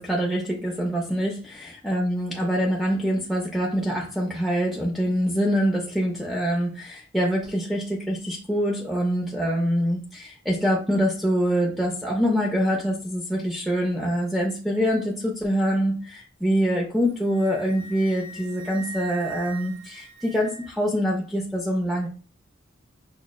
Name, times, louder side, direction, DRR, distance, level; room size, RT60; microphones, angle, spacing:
voice 1, 0.0-22.1, equal, ahead, -2 dB, 0.4 m, -25 dB
Wind instrument woodwind instrument, 16.9-20.9, right 5 dB, 55° right, 0.9 m, -41 dB
5.8 x 2.0 x 2.3 m, 0.38 s
head